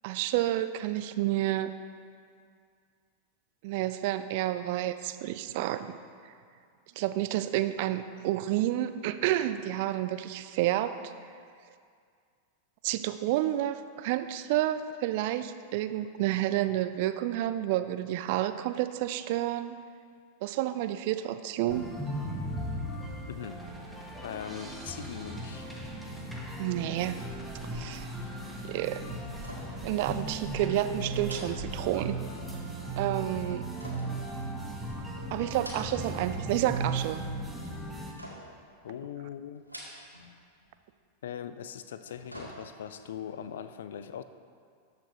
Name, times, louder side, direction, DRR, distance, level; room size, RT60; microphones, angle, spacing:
voice 1, 0.0-1.7 3.6-5.9 7.0-10.9 12.8-19.8 20.4-21.8 26.6-27.2 27.6-28.1 28.6-29.0 29.8-32.2 33.0-33.7 35.3-37.2, right 14 dB, 50° right, 11 dB, 0.4 m, -30 dB
sound 1, 21.7-38.1, right 2 dB, 5° right, 1.2 m, -37 dB
voice 2, 23.3-23.6 24.2-25.7 38.8-39.6 41.2-44.2, left 9 dB, 60° left, 11 dB, 0.4 m, -40 dB
sound 2, 29.4-29.9 30.2-30.4 31.2-32.3 33.8-34.9 35.4-36.2 36.5-37.1 38.2-38.7 39.6-40.3 40.6-40.7 41.8-43.0 43.4-43.5, equal, 90° left, 1.3 m, -47 dB
13.0 x 6.8 x 2.9 m, 2.2 s
figure-of-eight pair, 90°, 0 cm